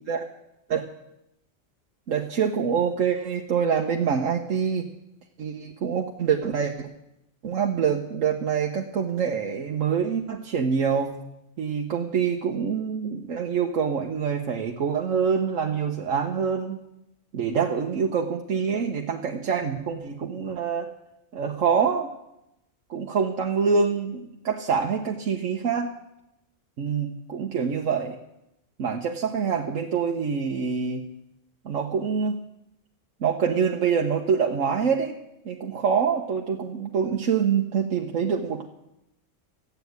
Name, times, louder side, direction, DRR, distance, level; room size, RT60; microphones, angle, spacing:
voice 1, 2.1-4.9 5.4-6.9 7.4-11.1 11.6-16.8 17.3-20.9 21.3-22.1 22.9-25.9 26.8-28.2 28.8-31.0 31.6-32.4 33.2-35.2 35.4-38.7, right 6 dB, 75° right, 1 dB, 1.3 m, -25 dB
13.5 x 8.1 x 9.4 m, 0.86 s
omnidirectional pair, 1.3 m